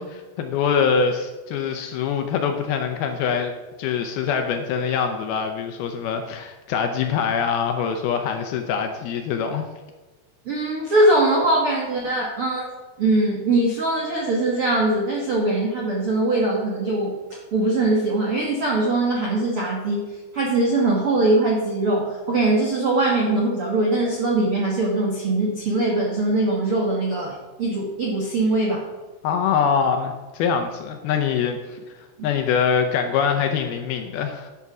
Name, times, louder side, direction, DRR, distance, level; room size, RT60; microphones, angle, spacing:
voice 1, 0.0-3.5 3.8-9.7 29.2-31.8 32.2-34.5, left 6 dB, 75° left, 5 dB, 2.4 m, -24 dB
voice 2, 10.4-12.7 13.0-20.1 20.3-28.9, right 2 dB, 65° right, -2 dB, 1.3 m, -21 dB
11.0 x 6.9 x 6.0 m, 1.2 s
omnidirectional pair, 5.1 m